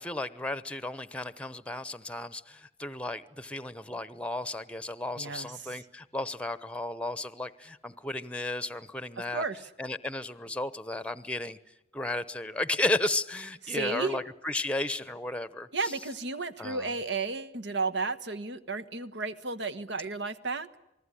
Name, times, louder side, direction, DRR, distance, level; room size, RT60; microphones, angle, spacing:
voice 1, 0.0-9.4 9.8-11.6 11.9-15.9 16.6-16.9, left 2 dB, 5° left, 15 dB, 0.9 m, -34 dB
voice 2, 5.2-5.5 9.3-9.6 13.7-14.2 15.7-20.7, right 3 dB, 65° right, 12 dB, 1.4 m, -33 dB
28.0 x 20.5 x 10.0 m, 0.88 s
head